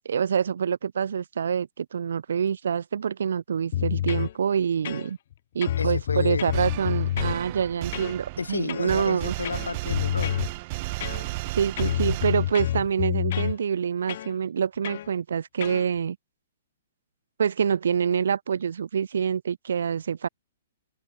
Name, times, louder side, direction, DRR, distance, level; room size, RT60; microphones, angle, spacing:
voice 1, 0.0-5.2 5.5-9.3 11.5-16.2 17.4-20.3, right 7 dB, 60° right, 1.3 m, -26 dB
sound 1, 3.7-4.3 4.8-5.3 5.6-7.4 7.9-8.2 8.7-9.0 9.4-10.5 11.0-11.5 11.8-13.6 14.1-14.3 14.8-15.1 15.6-15.8, left 12 dB, 50° left, 1.4 m, -28 dB
voice 2, 5.8-6.5 8.4-10.4, left 4 dB, 70° left, 6.4 m, -31 dB
sound 2, 6.5-12.9, right 22 dB, 35° right, 4.6 m, -34 dB
open air
figure-of-eight pair, 115°, 0 cm